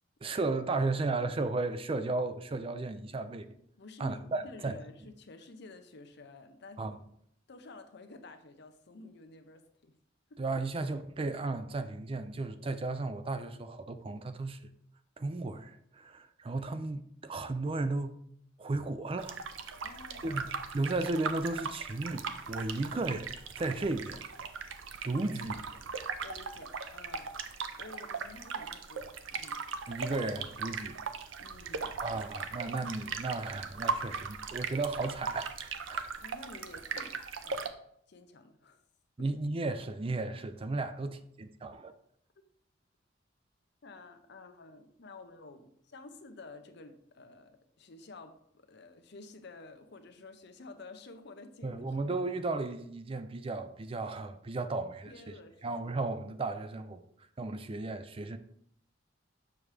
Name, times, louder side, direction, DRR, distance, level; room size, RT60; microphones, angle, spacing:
voice 1, 0.2-3.5 4.0-4.8 6.8-7.0 10.4-14.6 15.2-18.1 18.6-19.4 19.7-19.8 20.2-20.4 20.7-24.2 25.0-25.6 29.9-31.0 32.0-36.2 39.2-41.9 51.6-55.3 55.6-57.0 57.4-58.4, right 3 dB, 30° right, 0.4 m, -34 dB
voice 2, 3.8-7.0 7.5-9.9 10.3-10.4 19.8-20.5 25.5-25.8 26.2-27.3 27.8-29.6 31.4-31.9 36.2-37.2 37.4-37.7 38.1-38.8 39.2-39.3 43.8-52.0 55.1-55.7, left 3 dB, 65° left, 0.8 m, -51 dB
sound 1, 19.2-37.7, right 5 dB, 85° right, 0.6 m, -39 dB
7.1 x 6.0 x 3.3 m
head